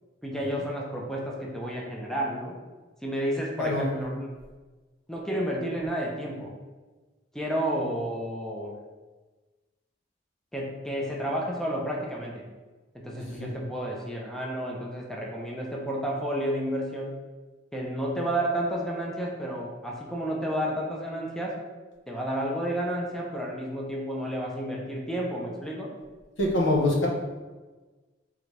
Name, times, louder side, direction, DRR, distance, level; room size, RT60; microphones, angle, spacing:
voice 1, 0.2-2.5 3.0-4.3 5.1-6.5 7.3-8.8 10.5-12.5 12.9-17.2 17.7-21.6 22.1-25.9, right 1 dB, 5° left, -2 dB, 0.5 m, -31 dB
voice 2, 13.2-13.5 26.4-27.1, left 1 dB, 75° left, -1 dB, 0.8 m, -25 dB
3.8 x 3.4 x 3.2 m, 1.3 s
head